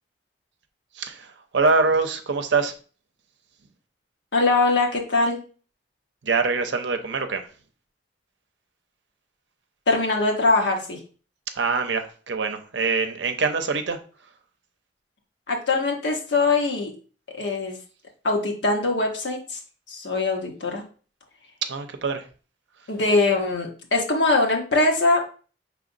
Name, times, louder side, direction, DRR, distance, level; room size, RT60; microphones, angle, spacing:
voice 1, 0.9-2.7 6.2-7.5 11.5-14.0 21.7-22.2, right 4 dB, 80° right, 7 dB, 0.6 m, -24 dB
voice 2, 4.3-5.4 9.9-11.0 15.5-16.9 17.3-17.8 18.2-19.6 19.9-20.8 22.9-25.3, left 3 dB, 80° left, 1 dB, 1.0 m, -22 dB
4.9 x 3.4 x 2.5 m, 0.38 s
head